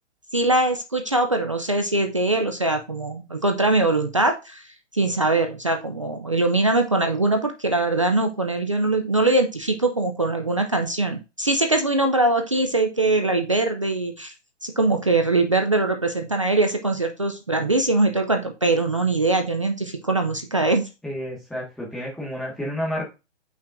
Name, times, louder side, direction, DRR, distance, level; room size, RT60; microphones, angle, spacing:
voice 1, 0.3-4.6 4.9-14.3 14.6-20.9, right 2 dB, 30° right, 5 dB, 0.4 m, -22 dB
voice 2, 21.0-23.0, equal, ahead, -5 dB, 1.5 m, -30 dB
6.4 x 5.8 x 2.5 m, 0.26 s
hypercardioid pair, 165°, 36 cm